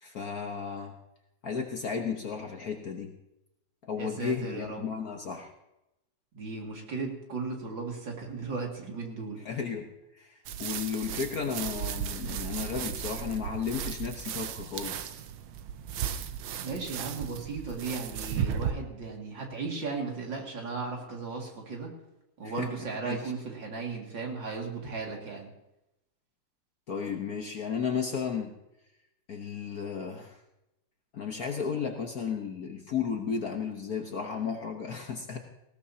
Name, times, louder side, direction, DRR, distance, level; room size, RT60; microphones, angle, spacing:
voice 1, 0.0-0.9 1.4-3.1 3.9-5.5 9.4-9.9 10.2-10.3 10.6-15.1 22.4-22.7 23.0-23.2 26.9-28.5 29.3-30.4 31.1-35.4, left 6 dB, 50° left, 2 dB, 1.3 m, -34 dB
voice 2, 4.0-4.9 6.3-9.4 16.6-21.9 22.4-25.5, right 4 dB, 55° right, 0 dB, 2.9 m, -36 dB
sound 1, 10.5-18.7, right 8 dB, 75° right, 1.5 m, -35 dB
19.0 x 17.0 x 2.8 m, 0.90 s
omnidirectional pair, 2.4 m